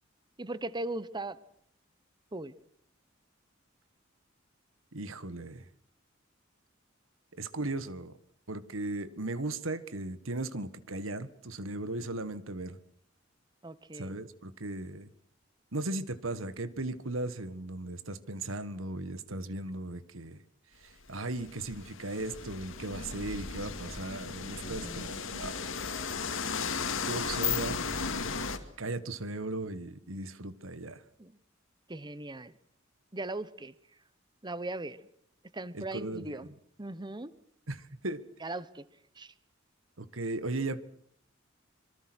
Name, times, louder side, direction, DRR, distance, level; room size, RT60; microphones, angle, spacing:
voice 1, 0.4-1.4 2.3-2.5 13.6-14.2 24.6-25.1 31.2-31.3 31.9-32.5 33.1-33.7 34.4-35.0 35.5-36.5 36.8-37.3 38.4-38.8 39.2-39.3, right 2 dB, 20° right, 1.1 m, -38 dB
voice 2, 4.9-5.7 7.4-8.2 8.5-12.8 13.9-15.1 15.7-20.4 20.8-25.7 27.0-27.9 28.8-31.0 35.7-36.5 37.7-38.2 40.0-40.8, right 2 dB, 90° right, 1.7 m, -37 dB
sound 1, 20.9-28.6, left 5 dB, 75° left, 2.3 m, -35 dB
25.5 x 23.5 x 6.3 m
head